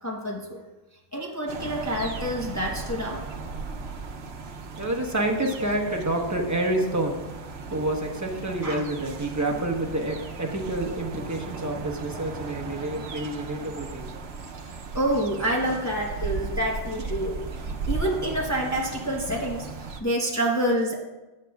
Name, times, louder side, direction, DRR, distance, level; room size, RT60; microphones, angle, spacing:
voice 1, 0.0-0.6 1.1-3.2 8.6-8.8 14.5-17.4 17.7-21.0, right 1 dB, 15° left, -2 dB, 1.0 m, -28 dB
sound 1, 1.5-20.0, right 4 dB, 75° right, 1.0 m, -36 dB
voice 2, 4.7-7.2 7.6-14.0, right 1 dB, 15° right, 0 dB, 1.1 m, -28 dB
15.0 x 7.6 x 2.3 m, 1.1 s
omnidirectional pair, 1.1 m